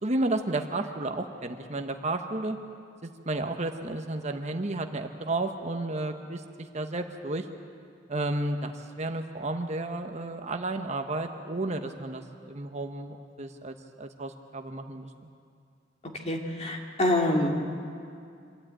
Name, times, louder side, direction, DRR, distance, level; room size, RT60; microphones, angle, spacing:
voice 1, 0.0-2.6 3.0-6.4 6.7-7.5 8.1-15.1, right 2 dB, 40° right, 5 dB, 1.0 m, -32 dB
voice 2, 16.3-17.5, left 1 dB, 35° left, 0 dB, 2.4 m, -26 dB
26.0 x 13.0 x 9.0 m, 2.4 s
head